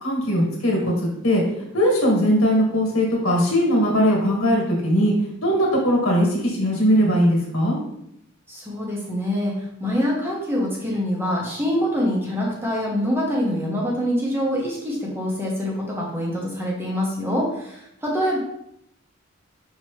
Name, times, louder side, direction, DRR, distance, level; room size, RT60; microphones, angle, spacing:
voice 1, 0.0-0.9 1.2-5.1 5.4-7.8, equal, 85° left, -1 dB, 1.6 m, -20 dB
voice 2, 8.5-18.4, equal, 10° right, -3 dB, 0.9 m, -25 dB
5.7 x 2.9 x 3.2 m, 0.76 s
head